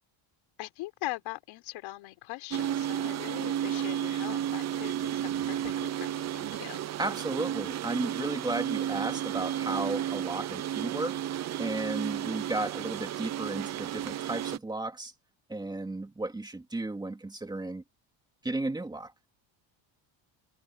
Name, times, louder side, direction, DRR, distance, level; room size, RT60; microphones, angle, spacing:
voice 1, 0.6-6.8, left 18 dB, 75° left, 4.6 m, -41 dB
sound 1, 2.5-14.6, right 11 dB, 35° right, 0.7 m, -32 dB
voice 2, 7.0-11.2 11.6-15.1 15.5-17.8 18.4-19.3, right 2 dB, 10° right, 2.5 m, -34 dB
cardioid pair, 170°, 46 cm